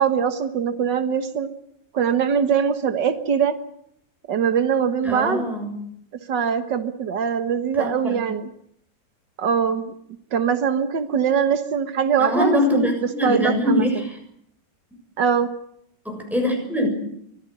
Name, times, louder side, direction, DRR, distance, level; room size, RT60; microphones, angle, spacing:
voice 1, 0.0-1.5 1.9-3.6 4.3-5.6 6.3-8.5 9.4-9.9 10.3-14.1 15.2-15.5, right 7 dB, 85° right, 9 dB, 2.0 m, -22 dB
voice 2, 5.0-5.7 7.8-8.3 12.2-14.1 16.0-16.9, left 1 dB, ahead, 2 dB, 6.8 m, -23 dB
24.0 x 15.5 x 9.8 m, 0.72 s
omnidirectional pair, 1.9 m